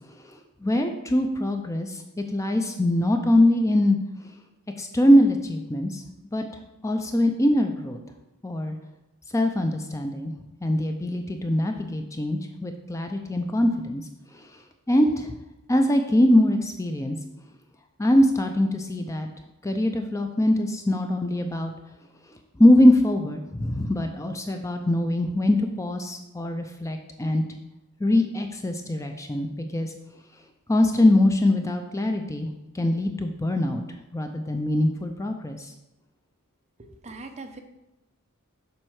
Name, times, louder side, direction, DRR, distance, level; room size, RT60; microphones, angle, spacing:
voice 1, 0.3-4.0 4.8-6.0 6.3-6.4 6.8-8.0 8.4-8.8 9.3-10.3 10.6-14.0 14.3-14.5 14.9-15.4 15.7-17.2 18.0-19.3 19.6-21.7 22.6-27.4 28.0-29.9 30.7-32.5 32.7-33.8 34.1-35.7, left 1 dB, 15° left, 5 dB, 0.4 m, -22 dB
voice 2, 36.8-37.6, right 3 dB, 30° right, 5 dB, 0.8 m, -41 dB
7.6 x 5.3 x 4.8 m, 0.96 s
head